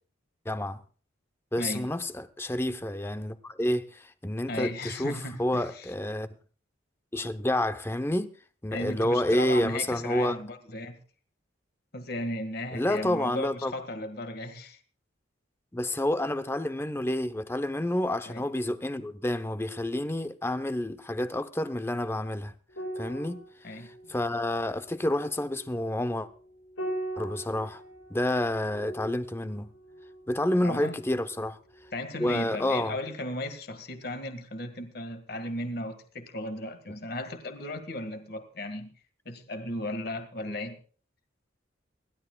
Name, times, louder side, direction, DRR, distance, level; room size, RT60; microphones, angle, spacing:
voice 1, 0.5-0.8 1.5-6.3 7.1-8.3 8.6-10.4 12.7-13.7 15.7-22.5 23.0-23.4 23.7-23.8 24.1-26.3 27.2-27.8 28.1-29.7 30.3-31.6 32.2-33.0, left 1 dB, 10° left, 0.7 m, -29 dB
voice 2, 1.6-1.9 4.5-5.9 8.7-11.0 11.9-14.8 18.3-18.4 23.6-23.9 30.6-31.0 31.9-38.9 39.3-40.8, left 1 dB, 50° left, 1.8 m, -36 dB
sound 1, 22.7-31.4 31.7-31.9, right 1 dB, 90° left, 4.6 m, -41 dB
29.5 x 12.0 x 2.3 m
head